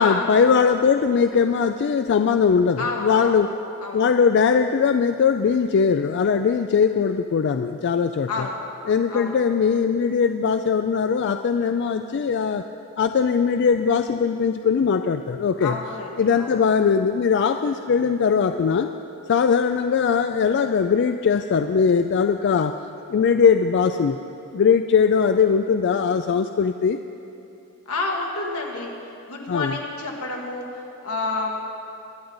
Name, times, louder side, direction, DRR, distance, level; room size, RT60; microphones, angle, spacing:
voice 1, 0.0-3.5 3.9-8.5 8.9-12.6 13.0-15.8 16.2-18.9 19.3-22.8 23.1-24.2 24.5-27.0 29.5-29.8, left 6 dB, 50° left, 8 dB, 0.3 m, -20 dB
voice 2, 2.8-3.4 3.8-4.0 8.3-8.6 9.1-9.4 15.6-16.6 27.9-28.9 29.3-30.7 31.0-31.6, left 3 dB, 80° left, 0 dB, 1.9 m, -29 dB
22.0 x 9.5 x 3.9 m, 2.7 s
head